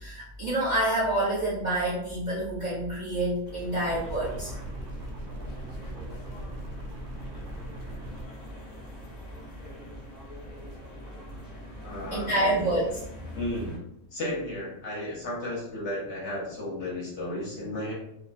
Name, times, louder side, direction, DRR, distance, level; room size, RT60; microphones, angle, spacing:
voice 1, 0.0-4.5 12.1-12.9, right 1 dB, 45° right, -8 dB, 0.6 m, -27 dB
sound 1, 3.4-13.8, equal, 45° left, 0.6 m, -44 dB
sound 2, 3.9-8.3, right 1 dB, 70° right, 0.9 m, -39 dB
voice 2, 11.8-12.7 13.3-13.8 14.1-17.9, left 1 dB, 60° left, -4 dB, 1.0 m, -34 dB
2.5 x 2.1 x 2.4 m, 0.78 s
omnidirectional pair, 1.4 m